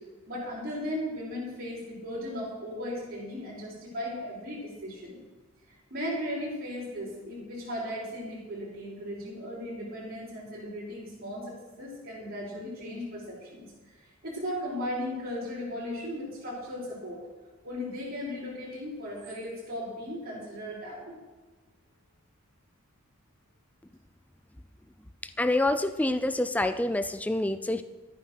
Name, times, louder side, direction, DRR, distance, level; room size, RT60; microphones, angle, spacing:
voice 1, 0.3-5.2 5.7-17.2 17.6-21.2, left 1 dB, 50° right, -11 dB, 5.6 m, -37 dB
voice 2, 25.4-27.8, left 1 dB, 5° left, 11 dB, 0.4 m, -27 dB
13.0 x 9.8 x 6.6 m, 1.3 s
head